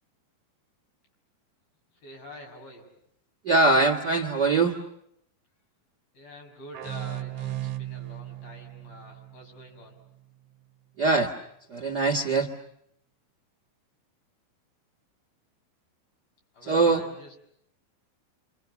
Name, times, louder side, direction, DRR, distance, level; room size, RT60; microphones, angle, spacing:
voice 1, 1.9-2.9 6.1-10.0 16.5-17.3, left 1 dB, 75° left, 1 dB, 7.8 m, -46 dB
voice 2, 3.4-4.8 11.0-11.3 11.7-12.5 16.6-17.0, right 3 dB, 45° right, 0 dB, 1.4 m, -22 dB
sound 1, 6.7-10.2, right 14 dB, 65° right, 2.3 m, -37 dB
28.0 x 27.5 x 7.0 m, 0.72 s
omnidirectional pair, 4.2 m